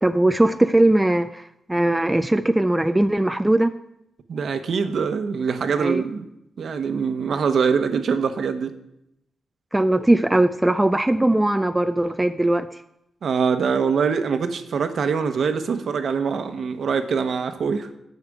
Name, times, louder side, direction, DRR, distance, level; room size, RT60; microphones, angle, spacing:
voice 1, 0.0-1.4 1.7-3.7 5.8-6.0 9.7-12.7, right 1 dB, 10° right, 9 dB, 0.3 m, -19 dB
voice 2, 4.3-6.3 6.6-8.8 13.2-17.9, right 6 dB, 55° right, 8 dB, 1.0 m, -23 dB
9.8 x 6.6 x 8.4 m, 0.83 s
wide cardioid pair, 145°, 0 cm